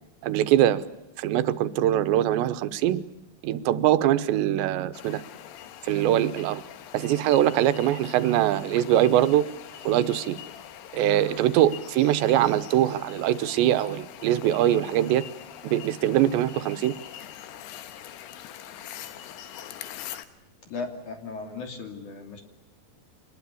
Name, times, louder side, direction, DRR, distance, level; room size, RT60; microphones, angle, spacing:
voice 1, 0.2-0.8 1.2-3.0 3.4-5.2 5.8-6.6 6.9-9.5 9.9-10.4 10.9-15.3 15.6-16.9, right 12 dB, 90° right, 13 dB, 3.2 m, -22 dB
sound 1, 4.9-20.3, left 11 dB, 80° left, 3.3 m, -43 dB
voice 2, 20.7-22.4, left 4 dB, 50° left, 5 dB, 4.0 m, -36 dB
26.0 x 21.0 x 8.4 m, 0.96 s
omnidirectional pair, 4.9 m